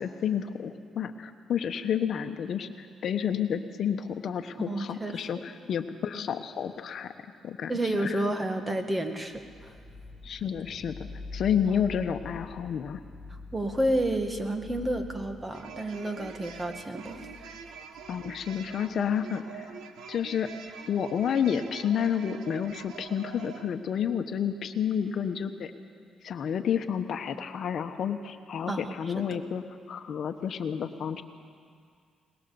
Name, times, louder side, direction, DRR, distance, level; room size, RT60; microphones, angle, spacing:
voice 1, 0.0-7.1 7.4-7.7 8.0-8.2 10.2-13.0 18.1-19.7 20.1-20.5 20.9-25.7 26.2-29.6 29.9-31.2, left 8 dB, 60° left, 8 dB, 1.1 m, -30 dB
voice 2, 4.7-5.2 7.7-9.7 11.7-11.8 13.5-17.6 28.7-29.2, right 1 dB, 15° right, 6 dB, 2.0 m, -30 dB
sound 1, 9.3-19.2, left 3 dB, 5° left, 5.2 m, -46 dB
sound 2, 15.5-23.7, right 7 dB, 85° right, 1.2 m, -45 dB
22.0 x 20.5 x 7.0 m, 2.2 s
cardioid pair, 90°, 0 cm